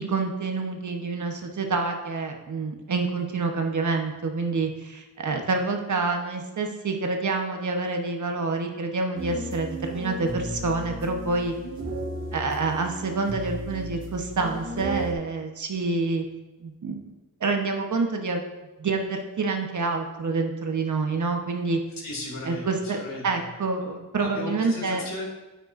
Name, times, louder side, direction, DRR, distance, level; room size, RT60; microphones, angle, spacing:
voice 1, 0.0-11.5 12.3-16.2 16.6-17.1 17.4-18.4 18.8-21.8 22.4-25.0, right 3 dB, 55° right, 3 dB, 1.1 m, -27 dB
sound 1, 9.2-15.1, right 1 dB, 35° right, 2.1 m, -34 dB
voice 2, 22.0-23.4 24.2-25.2, left 2 dB, 70° left, -2 dB, 2.8 m, -36 dB
9.1 x 9.0 x 2.6 m, 1.1 s
cardioid pair, 85°, 35 cm